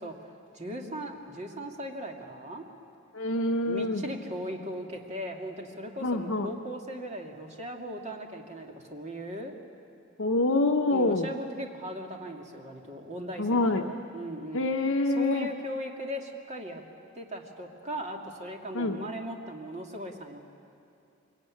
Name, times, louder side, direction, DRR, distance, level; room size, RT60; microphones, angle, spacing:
voice 1, 0.0-2.6 3.6-9.5 10.9-14.6 15.2-16.8 17.1-20.4, equal, 30° right, 2 dB, 2.3 m, -38 dB
voice 2, 3.1-4.0 6.0-6.5 10.2-11.3 13.4-13.8 14.5-15.5 18.7-19.0, left 2 dB, 65° left, 3 dB, 0.9 m, -26 dB
25.0 x 23.0 x 9.8 m, 2.6 s
head